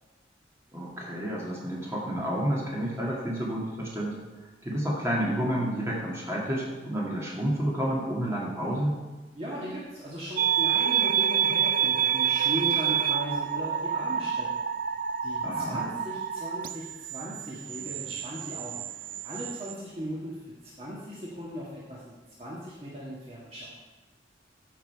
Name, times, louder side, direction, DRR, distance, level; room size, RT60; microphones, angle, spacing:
voice 1, 0.7-4.1 4.6-9.0 15.4-15.8, equal, 15° right, -4 dB, 2.3 m, -30 dB
voice 2, 9.3-14.5 15.2-18.8 19.2-23.7, equal, 30° right, -6 dB, 1.7 m, -38 dB
sound 1, 10.4-19.7, right 8 dB, 50° right, 0.4 m, -28 dB
14.0 x 6.0 x 4.7 m, 1.2 s
head